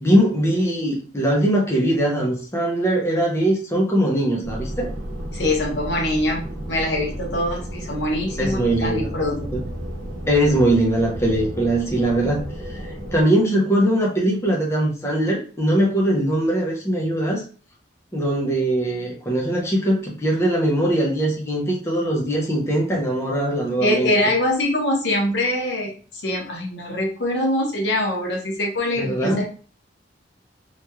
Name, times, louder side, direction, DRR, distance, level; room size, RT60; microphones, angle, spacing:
voice 1, 0.0-4.9 8.4-9.2 9.5-9.6 10.3-12.8 13.1-17.4 18.1-24.1 29.0-29.4, right 1 dB, 15° left, -2 dB, 0.7 m, -21 dB
sound 1, 4.4-13.2, equal, 60° right, 1.1 m, -32 dB
voice 2, 5.3-9.5 23.8-29.4, left 1 dB, 75° left, 0 dB, 1.0 m, -23 dB
3.1 x 2.9 x 2.3 m, 0.38 s
head